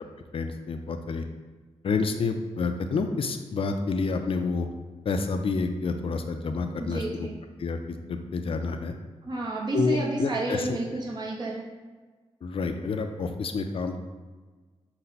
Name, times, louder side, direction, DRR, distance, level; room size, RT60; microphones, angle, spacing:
voice 1, 0.3-1.2 1.8-4.7 5.0-7.3 7.6-8.9 9.7-10.8 12.4-14.0, left 4 dB, 55° left, 6 dB, 0.4 m, -29 dB
voice 2, 6.8-7.3 9.2-11.6, right 2 dB, 40° right, -3 dB, 0.8 m, -30 dB
5.5 x 2.2 x 4.0 m, 1.4 s
cardioid pair, 70°, 11 cm